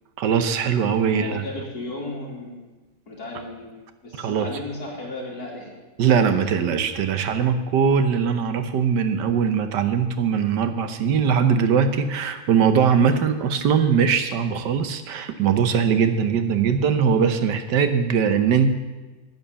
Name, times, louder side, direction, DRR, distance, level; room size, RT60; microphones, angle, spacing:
voice 1, 0.2-1.4 4.2-4.5 6.0-18.7, right 6 dB, 80° right, 9 dB, 1.5 m, -21 dB
voice 2, 1.0-2.6 3.1-3.7 4.0-5.7, left 2 dB, 65° left, -3 dB, 3.5 m, -34 dB
10.5 x 9.6 x 7.0 m, 1.2 s
omnidirectional pair, 1.8 m